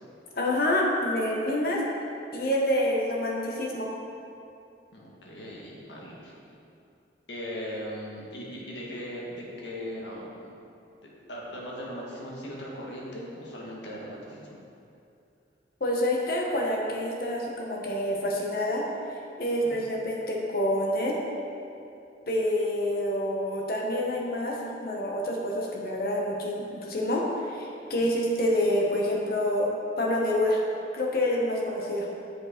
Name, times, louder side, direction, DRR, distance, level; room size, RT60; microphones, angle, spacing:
voice 1, 0.3-1.8 2.3-3.9 15.8-18.8 19.4-21.2 22.3-30.6 30.9-32.1, left 1 dB, 55° left, -2 dB, 1.1 m, -27 dB
voice 2, 4.9-6.4 7.3-10.5 11.3-14.6 19.6-19.8 28.0-28.1, equal, 75° left, -4 dB, 1.4 m, -39 dB
7.5 x 5.0 x 4.3 m, 2.6 s
head